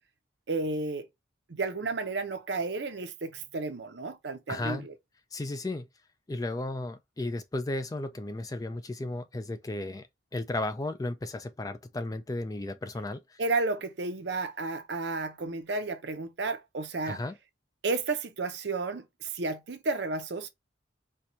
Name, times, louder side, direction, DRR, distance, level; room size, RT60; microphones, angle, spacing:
voice 1, 0.5-1.1 1.5-4.9 13.4-17.2 17.8-20.5, right 3 dB, 65° right, 0.6 m, -32 dB
voice 2, 4.5-4.9 5.3-5.9 6.3-10.1 10.3-13.4 17.1-17.4, left 2 dB, 20° left, 0.3 m, -34 dB
4.4 x 2.3 x 2.7 m
head